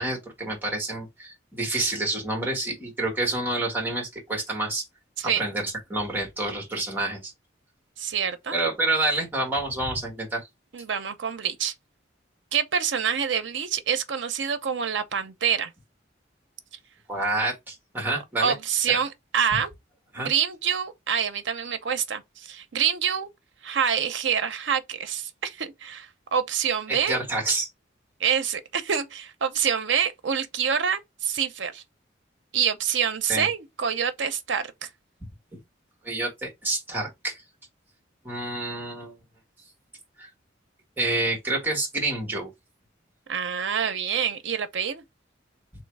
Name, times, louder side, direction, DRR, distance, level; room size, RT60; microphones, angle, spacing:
voice 1, 0.0-4.8 5.4-7.3 8.5-10.4 17.1-18.5 20.1-20.3 26.9-27.7 33.3-33.5 36.0-37.4 38.2-39.1 40.2-40.3 41.0-42.5, right 2 dB, 10° right, 1.6 m, -28 dB
voice 2, 5.2-5.5 8.0-8.6 10.7-11.7 12.5-15.7 18.4-19.7 20.2-23.3 23.6-27.2 28.2-31.8 32.5-34.9 43.3-45.0, right 7 dB, 70° right, 0.6 m, -26 dB
3.1 x 3.0 x 4.5 m
head